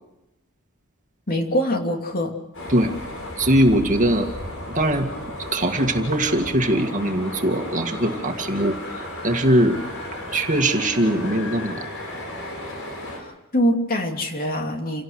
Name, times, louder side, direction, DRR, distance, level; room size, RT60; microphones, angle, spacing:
voice 1, 1.3-2.3 13.2-15.0, equal, 40° left, 3 dB, 2.8 m, -24 dB
sound 1, 2.5-13.2, left 1 dB, 65° left, 6.4 m, -34 dB
voice 2, 3.4-4.3 4.7-5.1 5.5-8.8 9.2-9.8 10.3-11.9, right 1 dB, 35° right, 4 dB, 2.1 m, -21 dB
28.5 x 18.0 x 6.4 m, 0.92 s
head